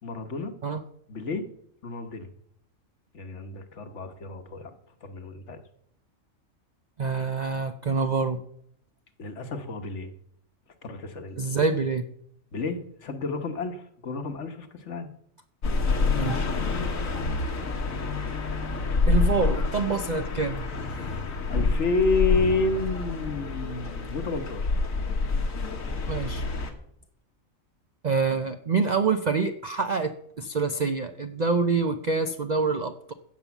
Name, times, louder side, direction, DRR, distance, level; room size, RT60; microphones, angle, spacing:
voice 1, 0.0-0.5 1.1-1.5 1.8-2.3 3.1-4.8 5.0-5.6 9.2-10.1 10.8-11.4 12.5-15.1 21.5-24.7, left 3 dB, 60° left, 7 dB, 1.5 m, -30 dB
voice 2, 7.0-8.4 11.4-12.1 16.2-16.5 19.1-20.7 26.1-26.5 28.0-33.1, right 4 dB, 45° right, 8 dB, 0.6 m, -26 dB
sound 1, 15.6-26.7, left 4 dB, 80° left, 1.9 m, -27 dB
16.0 x 5.5 x 7.1 m, 0.70 s
omnidirectional pair, 1.4 m